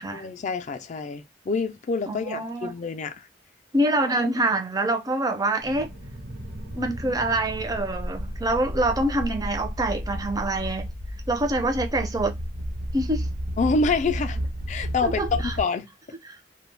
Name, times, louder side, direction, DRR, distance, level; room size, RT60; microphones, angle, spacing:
voice 1, 0.1-3.3 13.6-14.4 14.7-15.9, left 4 dB, 40° left, 0.4 m, -27 dB
voice 2, 2.1-2.7 3.7-5.9 6.7-10.9 11.3-12.3 12.9-13.3 15.0-15.5 16.3-16.4, right 1 dB, 20° right, 0.4 m, -25 dB
sound 1, 5.6-15.6, equal, 80° right, 1.0 m, -33 dB
2.3 x 2.2 x 3.2 m
head